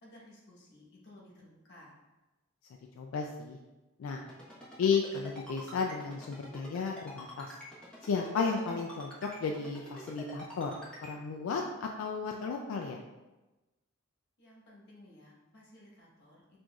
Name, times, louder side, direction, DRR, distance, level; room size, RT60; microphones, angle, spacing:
voice 1, 0.0-2.0 14.4-16.6, left 1 dB, 55° left, -4 dB, 1.2 m, -56 dB
voice 2, 3.0-3.6 4.0-4.2 4.8-7.5 8.0-13.0, left 5 dB, 90° left, 2 dB, 0.3 m, -33 dB
Ringtone, 4.3-11.1, equal, 5° left, 1.0 m, -47 dB
6.1 x 2.5 x 2.3 m, 1.1 s
head